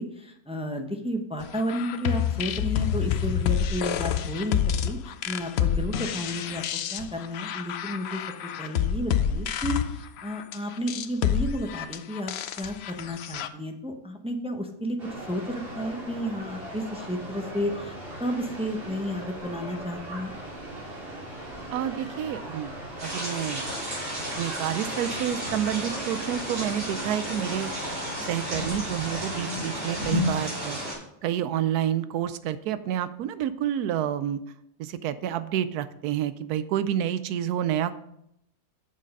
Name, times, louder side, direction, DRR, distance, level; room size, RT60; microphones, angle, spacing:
voice 1, 0.0-8.2 8.6-20.3, equal, 10° right, 3 dB, 0.3 m, -32 dB
sound 1, 1.5-13.5, left 9 dB, 75° left, 0.6 m, -28 dB
sound 2, 15.0-30.9, right 1 dB, 35° right, 2.9 m, -39 dB
voice 2, 21.7-22.7 23.0-23.7 24.4-27.7 28.3-30.8 31.2-34.4 34.8-37.9, right 10 dB, 85° right, 13 dB, 1.1 m, -29 dB
sound 3, 23.0-30.9, equal, 55° right, 4.1 m, -32 dB
7.3 x 6.5 x 5.3 m, 0.77 s
omnidirectional pair, 1.6 m